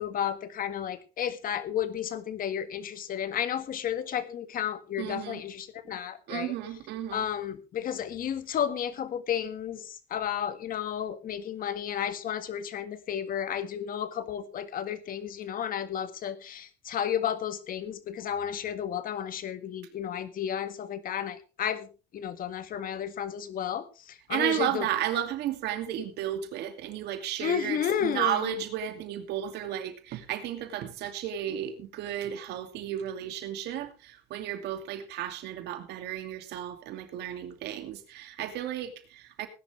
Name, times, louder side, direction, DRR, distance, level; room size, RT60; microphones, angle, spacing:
voice 1, 0.0-6.5 7.1-21.9 22.1-24.9 27.4-28.5, left 9 dB, 55° left, 1.8 m, -32 dB
voice 2, 5.0-5.4 6.3-7.3 24.3-39.5, right 11 dB, 80° right, 2.5 m, -33 dB
19.0 x 11.0 x 3.4 m
cardioid pair, 110°, 17 cm